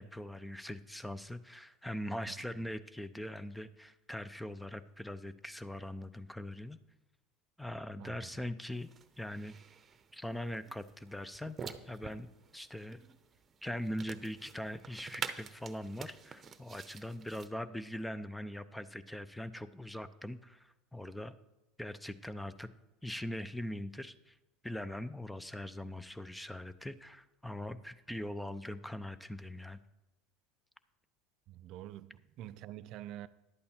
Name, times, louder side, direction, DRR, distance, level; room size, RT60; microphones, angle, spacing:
voice 1, 0.0-6.8 7.6-8.9 9.2-9.6 10.1-12.3 12.5-13.0 13.6-21.3 21.8-22.7 23.0-24.4 24.6-29.8, left 1 dB, 5° left, 0.6 m, -41 dB
voice 2, 8.0-8.3 31.5-33.3, right 13 dB, 60° right, 0.4 m, -47 dB
sound 1, 8.7-17.5, right 6 dB, 30° right, 0.8 m, -48 dB
11.0 x 8.4 x 4.4 m
hypercardioid pair, 80°, 0 cm